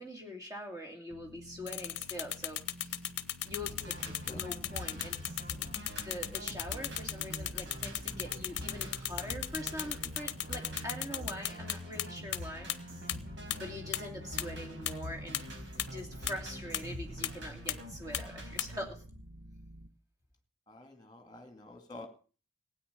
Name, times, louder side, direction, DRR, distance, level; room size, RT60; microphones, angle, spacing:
voice 1, 0.0-3.0 3.4-3.9 4.3-5.2 5.9-12.7 13.5-15.4 15.9-19.0, left 1 dB, 15° right, 3 dB, 2.8 m, -43 dB
sound 1, 1.1-10.3 10.7-19.9, equal, 75° right, 1.5 m, -51 dB
sound 2, 1.7-12.0 12.3-12.4 12.7-12.8 13.1-13.2 13.5-13.6 13.9-14.0 14.4-14.5 14.9-15.0 15.3-15.4 15.8-15.9 16.3-16.4 16.7-16.8 17.2-17.3 17.7-17.8 18.1-18.2 18.6-18.7, left 13 dB, 55° left, 0.9 m, -34 dB
sound 3, 3.6-18.8, equal, 55° right, 4.4 m, -45 dB
voice 2, 4.0-4.4 20.7-22.1, left 2 dB, 20° left, 7 dB, 2.4 m, -49 dB
16.5 x 9.4 x 6.9 m, 0.39 s
head